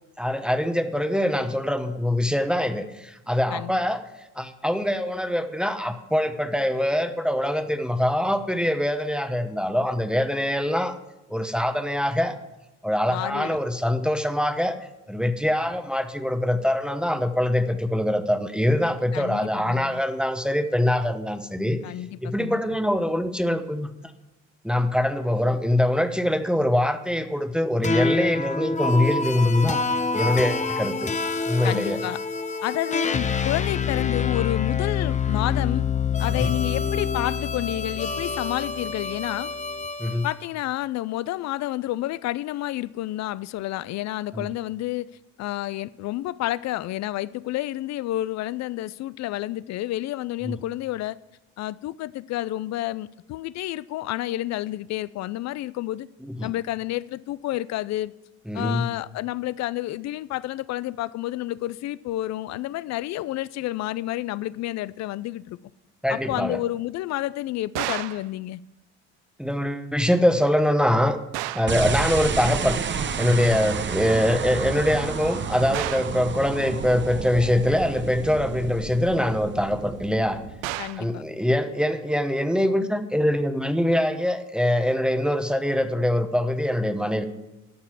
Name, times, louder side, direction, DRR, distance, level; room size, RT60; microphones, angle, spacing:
voice 1, 0.2-4.0 4.3-10.9 11.3-12.4 12.8-14.8 15.1-21.8 22.2-23.9 24.6-29.8 30.1-31.1 31.5-32.0 36.4-36.5 40.0-40.3 44.3-44.5 50.4-50.6 56.2-56.5 58.5-58.9 66.0-66.6 69.4-71.2 71.5-72.8 73.2-80.4 81.0-87.3, left 1 dB, ahead, 1.0 m, -23 dB
voice 2, 13.1-13.6 19.1-20.0 21.8-22.6 31.6-32.2 32.6-35.9 36.2-39.5 40.2-45.1 45.4-51.2 51.6-56.1 56.4-58.1 58.5-65.6 66.1-68.6 80.8-81.2, left 15 dB, 50° left, 0.5 m, -30 dB
sound 1, 27.8-40.3, left 5 dB, 20° left, 0.8 m, -26 dB
sound 2, 67.7-68.3 71.3-71.8 75.7-76.2 80.6-81.1, right 16 dB, 75° right, 0.6 m, -31 dB
sound 3, 71.7-81.1, right 6 dB, 30° right, 0.9 m, -30 dB
13.0 x 5.8 x 7.4 m
hypercardioid pair, 70°, 35 cm